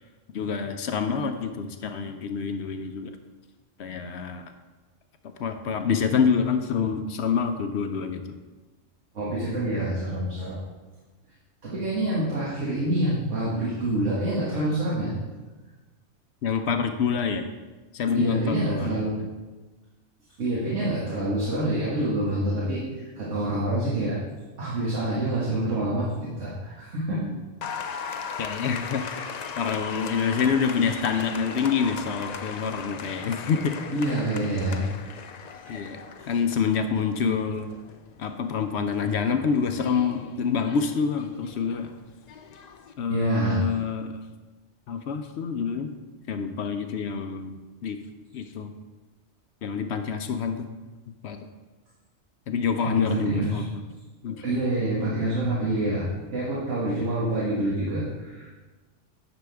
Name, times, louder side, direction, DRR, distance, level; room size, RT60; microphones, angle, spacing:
voice 1, 0.3-3.1 3.8-4.5 5.4-8.2 16.4-17.4 17.9-19.2 27.1-27.5 28.4-29.0 29.6-33.8 35.7-37.7 38.2-41.9 43.0-44.2 44.9-45.9 46.3-48.0 48.3-48.7 49.6-50.7 51.2-51.4 52.5-53.8 54.2-54.6, left 6 dB, 65° left, 7 dB, 0.8 m, -27 dB
voice 2, 9.1-10.6 11.6-15.1 18.1-19.2 20.4-24.2 24.6-27.2 28.9-29.3 33.9-34.8 35.6-35.7 43.1-43.6 52.8-53.6 54.3-56.1 56.3-58.5, right 1 dB, 70° right, -7 dB, 1.9 m, -27 dB
Applause, 27.6-42.9, left 6 dB, 85° left, 0.3 m, -38 dB
9.7 x 6.1 x 3.4 m, 1.2 s
omnidirectional pair, 1.3 m